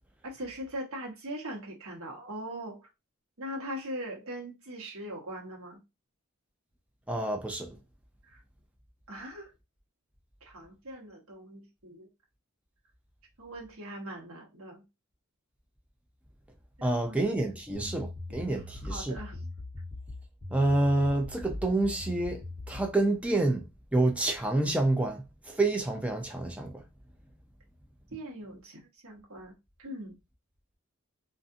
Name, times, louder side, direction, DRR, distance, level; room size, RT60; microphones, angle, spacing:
voice 1, 0.2-2.9 3.4-5.8 8.2-8.4 9.1-9.5 10.4-12.1 13.4-14.8 16.8-18.0 18.5-19.4 28.1-30.1, right 1 dB, 80° right, 1.1 m, -41 dB
voice 2, 7.1-7.7 16.8-19.2 20.5-22.4 22.7-23.6 23.9-25.2 25.5-26.7, right 2 dB, 5° right, 0.4 m, -28 dB
sound 1, 17.7-23.0, left 2 dB, 45° right, 1.2 m, -41 dB
2.6 x 2.5 x 2.4 m
head